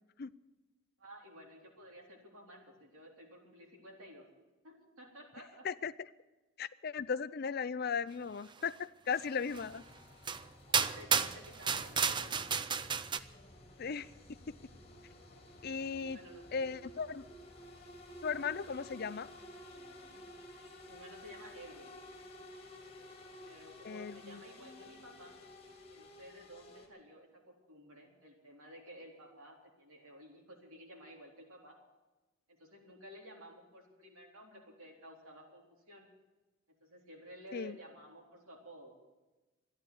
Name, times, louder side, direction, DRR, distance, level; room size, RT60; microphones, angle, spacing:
voice 1, 1.0-4.3 4.6-5.7 10.7-12.5 16.1-16.6 20.8-21.9 23.4-25.4 25.9-31.8 32.5-36.1 36.8-38.9, equal, 85° right, 0 dB, 4.1 m, -54 dB
voice 2, 6.6-9.8 13.8-14.1 15.6-16.2 16.5-17.2 18.2-19.3 23.8-24.4 37.5-37.8, left 6 dB, 45° left, 16 dB, 0.5 m, -37 dB
sound 1, 9.5-26.9, left 1 dB, 30° left, 2.2 m, -53 dB
sound 2, 9.5-9.6 10.3-10.4 10.7-13.2, right 6 dB, 20° right, 0.4 m, -32 dB
13.5 x 11.0 x 9.6 m, 1.1 s
head